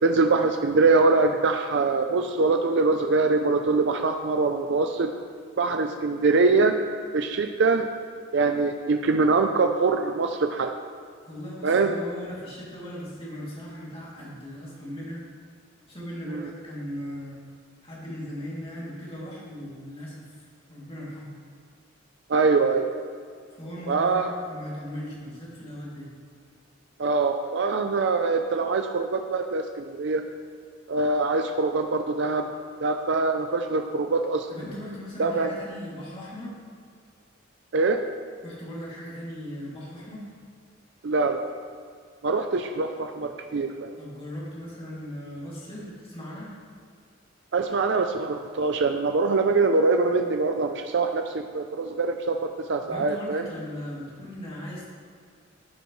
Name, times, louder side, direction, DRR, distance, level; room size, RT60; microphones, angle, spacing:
voice 1, 0.0-5.1 5.6-6.7 7.1-7.9 8.3-10.7 11.6-12.0 16.3-16.5 22.3-23.0 23.9-24.3 27.0-30.2 30.9-32.5 32.8-34.5 35.2-35.5 37.7-38.0 41.0-41.5 42.2-44.0 47.5-52.4 52.7-53.4, right 3 dB, 60° right, 5 dB, 0.5 m, -23 dB
voice 2, 11.2-15.2 15.9-17.4 17.8-21.4 23.5-26.1 34.5-36.5 38.4-40.2 44.0-46.5 52.9-54.9, equal, 30° left, -6 dB, 2.7 m, -38 dB
13.0 x 8.1 x 3.2 m, 2.1 s
head